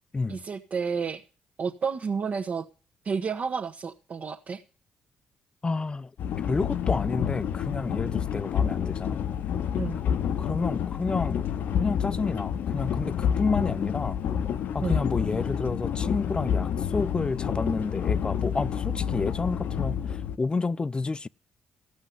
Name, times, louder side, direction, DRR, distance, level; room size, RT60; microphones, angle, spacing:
voice 1, 0.3-1.2 1.6-2.6 3.0-4.6 9.8-10.0 14.8-15.0, right 5 dB, 55° right, 1.5 m, -30 dB
voice 2, 5.6-6.1 6.4-9.2 10.4-11.4 11.8-14.2 14.7-21.3, left 3 dB, 30° left, 0.6 m, -30 dB
sound 1, 6.2-20.4, left 8 dB, 70° left, 0.8 m, -28 dB
15.5 x 6.2 x 9.5 m
supercardioid pair, 55°, 3 cm